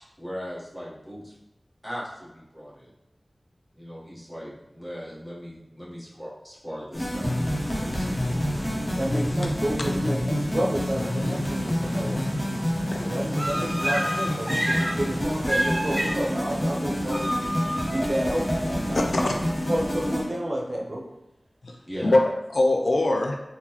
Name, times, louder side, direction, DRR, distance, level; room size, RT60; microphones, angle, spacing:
voice 1, 0.2-1.3 1.8-2.9 3.7-7.4 7.8-8.3 21.8-22.2, equal, 15° left, -7 dB, 1.2 m, -38 dB
sound 1, 6.9-20.2, equal, 35° left, 1.0 m, -28 dB
voice 2, 9.0-12.2 13.0-17.5 17.8-19.2 19.7-21.0, right 1 dB, 55° right, -2 dB, 0.7 m, -30 dB
sound 2, 13.3-15.0 15.4-16.2 17.1-20.3, equal, 5° right, 0.5 m, -30 dB
voice 3, 18.9-19.4 21.6-21.8 22.0-23.4, left 2 dB, 80° left, 2 dB, 0.4 m, -22 dB
3.6 x 2.2 x 2.9 m, 0.93 s
wide cardioid pair, 60°, 0 cm